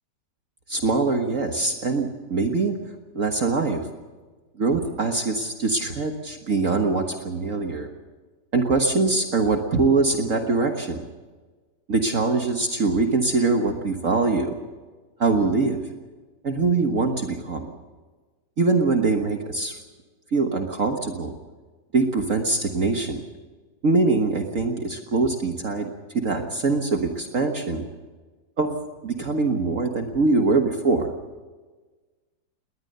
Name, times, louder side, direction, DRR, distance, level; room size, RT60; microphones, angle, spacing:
voice 1, 0.7-2.7 3.2-3.8 4.6-7.9 8.5-11.0 11.9-14.6 15.2-15.8 16.4-17.7 18.6-19.8 20.3-21.3 21.9-23.2 23.8-25.9 26.1-27.9 28.6-28.8 29.0-31.1, right 3 dB, 50° right, 4 dB, 1.8 m, -23 dB
20.5 x 19.5 x 6.7 m, 1.3 s
omnidirectional pair, 1.9 m